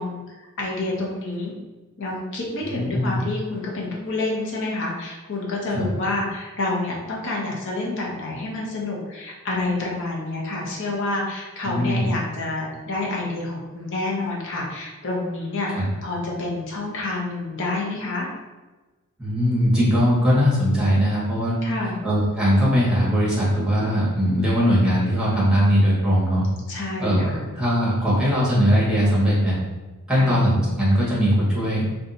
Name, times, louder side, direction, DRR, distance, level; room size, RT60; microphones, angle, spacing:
voice 1, 0.0-1.5 2.0-18.3 21.6-22.0 26.7-27.4 30.1-30.3, left 2 dB, 55° left, -2 dB, 0.8 m, -28 dB
voice 2, 2.7-3.2 5.7-5.8 11.6-12.0 15.7-15.9 19.2-21.6 22.0-26.4 27.0-27.3 27.6-29.6 30.1-31.8, equal, 5° right, -7 dB, 1.1 m, -20 dB
2.6 x 2.3 x 4.0 m, 1.2 s
head